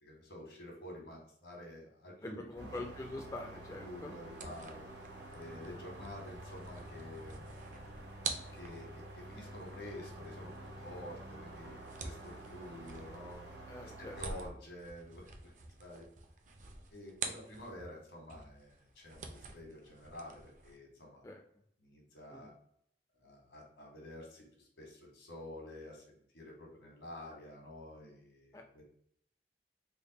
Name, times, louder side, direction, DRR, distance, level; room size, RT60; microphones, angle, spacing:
voice 1, 0.0-2.8 3.8-4.8 5.3-7.5 8.5-11.7 12.0-13.4 13.8-15.5 15.8-16.1 16.9-21.2 21.8-22.5 23.2-28.8, left 1 dB, 80° left, 0 dB, 1.4 m, -49 dB
voice 2, 2.2-4.5 13.7-14.2 21.2-21.4 22.3-22.5 28.5-28.6, left 2 dB, 20° left, 1 dB, 0.3 m, -45 dB
sound 1, 2.6-14.5, right 1 dB, 85° right, 0.9 m, -49 dB
sound 2, 4.3-18.0 18.3-20.8, right 4 dB, 45° right, 0.4 m, -48 dB
3.4 x 2.1 x 3.9 m, 0.67 s
head